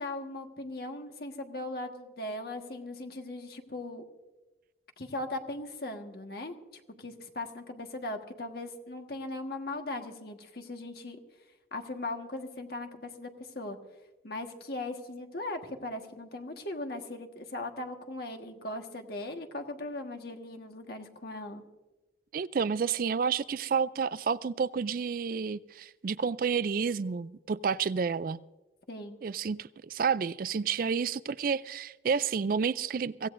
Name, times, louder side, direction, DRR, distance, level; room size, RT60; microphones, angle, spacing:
voice 1, 0.0-4.0 5.0-6.5 7.0-11.2 11.7-13.8 14.2-21.6 28.9-29.2, left 2 dB, 55° left, 1.5 m, -39 dB
voice 2, 22.3-28.4 29.2-33.3, right 6 dB, 50° right, 0.4 m, -30 dB
24.0 x 16.5 x 2.6 m
head